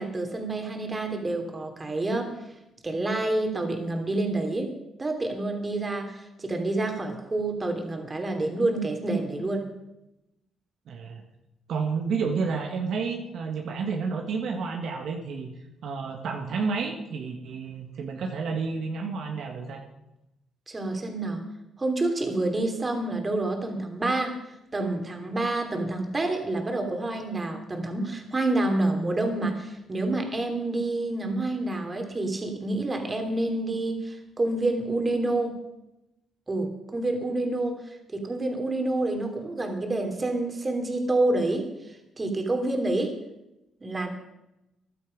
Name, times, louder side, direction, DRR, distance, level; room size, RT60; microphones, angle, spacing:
voice 1, 0.0-2.3 2.8-4.7 5.0-9.7 20.7-21.4 21.8-24.3 24.7-35.6 36.5-37.8 38.1-43.2 43.8-44.1, right 2 dB, 25° right, 4 dB, 3.0 m, -28 dB
voice 2, 10.9-11.2 11.7-15.5 15.8-19.8, right 5 dB, 70° right, 3 dB, 1.7 m, -30 dB
14.5 x 11.5 x 5.3 m, 0.91 s
cardioid pair, 90°, 0 cm